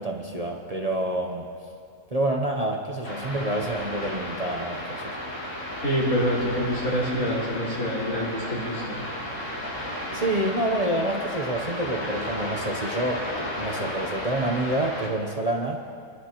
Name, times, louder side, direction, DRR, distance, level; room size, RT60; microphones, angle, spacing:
voice 1, 0.0-1.4 2.1-5.0 10.1-15.8, right 1 dB, 35° right, 1 dB, 0.7 m, -28 dB
sound 1, 3.0-15.1, left 1 dB, 60° left, 3.2 m, -33 dB
voice 2, 5.8-9.1, equal, 85° left, -8 dB, 4.6 m, -26 dB
25.5 x 11.5 x 3.0 m, 2.4 s
omnidirectional pair, 1.5 m